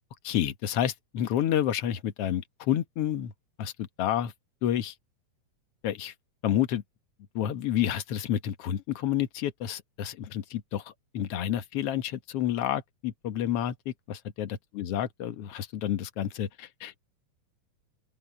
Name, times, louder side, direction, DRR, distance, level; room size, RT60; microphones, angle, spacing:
voice 1, 0.2-3.3 3.6-4.3 4.6-4.9 5.8-6.1 6.4-6.8 7.4-17.0, left 11 dB, 60° left, 1.8 m, -30 dB
open air
omnidirectional pair, 3.8 m